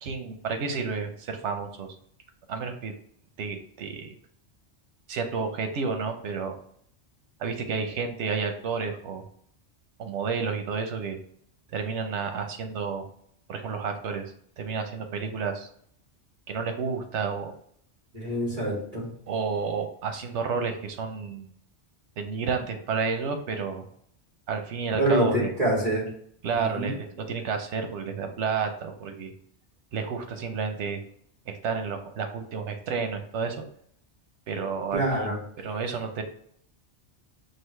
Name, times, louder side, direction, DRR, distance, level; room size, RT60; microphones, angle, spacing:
voice 1, 0.0-2.0 2.5-2.9 3.4-4.2 5.1-6.5 7.4-9.3 10.0-11.2 11.7-13.1 13.5-15.7 16.5-17.5 19.3-21.5 22.2-23.9 24.5-25.5 26.4-29.3 29.9-31.0 31.5-33.6 34.5-36.2, right 5 dB, 90° right, 6 dB, 1.0 m, -31 dB
voice 2, 18.1-19.1 25.0-26.1 26.5-26.9 34.9-35.4, right 1 dB, 35° right, -5 dB, 2.2 m, -26 dB
5.9 x 2.7 x 3.2 m, 0.65 s
omnidirectional pair, 1.2 m